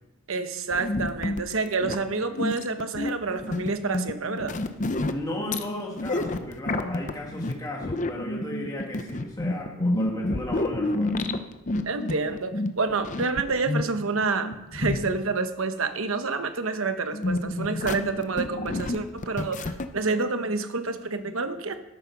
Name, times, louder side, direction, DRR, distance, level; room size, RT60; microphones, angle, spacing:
voice 1, 0.3-4.6 11.8-21.8, right 4 dB, 70° right, 9 dB, 1.1 m, -28 dB
sound 1, 0.7-15.2 17.1-19.9, left 2 dB, 35° left, 0.7 m, -29 dB
voice 2, 5.0-11.2, left 1 dB, 15° left, -2 dB, 1.8 m, -35 dB
13.5 x 9.0 x 5.9 m, 0.96 s
head